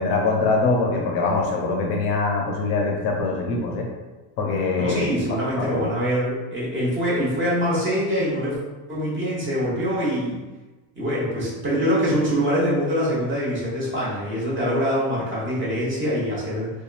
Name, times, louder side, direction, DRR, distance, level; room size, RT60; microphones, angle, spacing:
voice 1, 0.0-3.9 4.4-5.1 5.6-5.8, left 3 dB, 55° left, 0 dB, 0.6 m, -23 dB
voice 2, 4.8-8.6 8.9-10.4 11.0-16.7, equal, 25° right, -7 dB, 0.9 m, -24 dB
2.7 x 2.3 x 2.4 m, 1.2 s
supercardioid pair, 120°, 48 cm